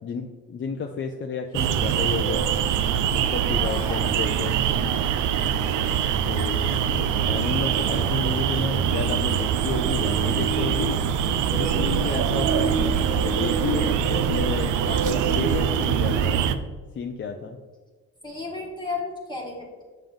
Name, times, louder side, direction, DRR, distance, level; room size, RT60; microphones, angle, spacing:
voice 1, 0.0-2.5 3.3-4.6 6.0-11.0 11.5-16.4 16.9-17.6, left 5 dB, 40° left, 3 dB, 0.6 m, -31 dB
sound 1, 1.5-16.6, right 8 dB, 80° right, 0.5 m, -23 dB
voice 2, 3.6-4.1 4.8-5.1 11.6-12.3 14.9-15.5 18.2-19.8, left 3 dB, 15° left, -2 dB, 1.4 m, -35 dB
7.4 x 5.3 x 3.7 m, 1.4 s
cardioid pair, 90°, 30 cm